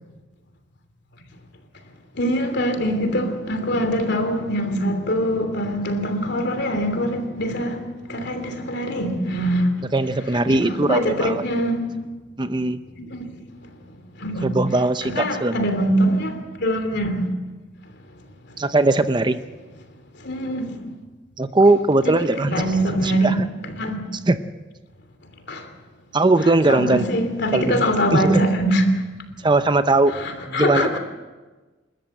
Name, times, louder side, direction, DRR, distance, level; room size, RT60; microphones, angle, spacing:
voice 1, 2.1-9.8 10.5-11.8 13.0-13.3 14.2-14.6 15.0-17.3 18.5-18.6 20.2-20.8 22.0-23.4 23.7-24.0 25.5-25.7 26.7-28.8 30.1-31.0, equal, 60° left, 3.0 m, -23 dB
voice 2, 9.9-11.4 12.4-12.8 14.4-15.6 18.6-19.4 21.4-22.6 23.0-23.3 24.3-24.4 26.1-27.0 27.5-27.8 28.1-28.4 29.4-30.1 30.5-31.0, right 2 dB, 25° right, 0.6 m, -19 dB
29.0 x 13.5 x 7.8 m
head